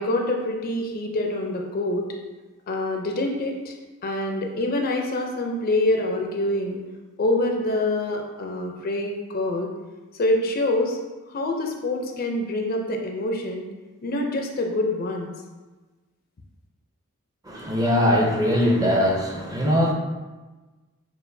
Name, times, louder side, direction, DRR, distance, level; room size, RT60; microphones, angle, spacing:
voice 1, 0.0-2.0 2.7-3.8 4.0-6.8 7.2-9.7 10.2-11.0 11.3-13.6 14.0-15.3, left 1 dB, 45° left, 2 dB, 0.4 m, -25 dB
voice 2, 17.4-19.9, equal, 15° right, -1 dB, 0.5 m, -21 dB
6.5 x 2.4 x 2.6 m, 1.2 s
head